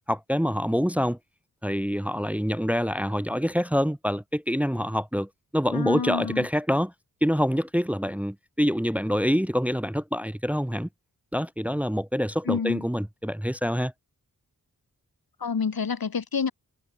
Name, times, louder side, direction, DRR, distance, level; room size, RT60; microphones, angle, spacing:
voice 1, 0.1-1.2 1.6-6.9 7.2-10.9 11.3-13.9, equal, 5° right, 0.9 m, -26 dB
voice 2, 5.7-6.5 12.4-12.9 15.4-16.5, left 6 dB, 85° left, 3.2 m, -28 dB
wide cardioid pair, 65°, 35 cm